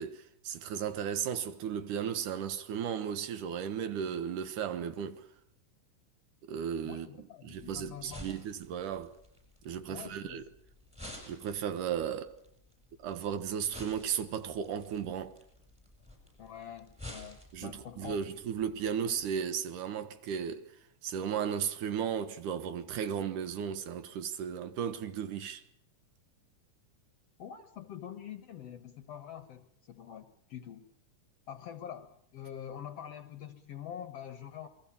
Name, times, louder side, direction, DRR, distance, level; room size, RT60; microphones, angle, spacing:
voice 1, 0.0-5.3 6.4-7.1 7.4-9.1 9.6-10.4 11.3-12.4 13.0-15.4 17.5-20.7 21.0-25.6, right 8 dB, 70° right, 2.7 m, -35 dB
voice 2, 6.8-8.4 9.9-10.5 16.4-18.3 27.4-30.9 31.5-34.7, left 9 dB, 60° left, 1.8 m, -45 dB
sound 1, 7.5-19.3, left 1 dB, ahead, 7.5 m, -52 dB
28.0 x 21.0 x 7.2 m
omnidirectional pair, 3.9 m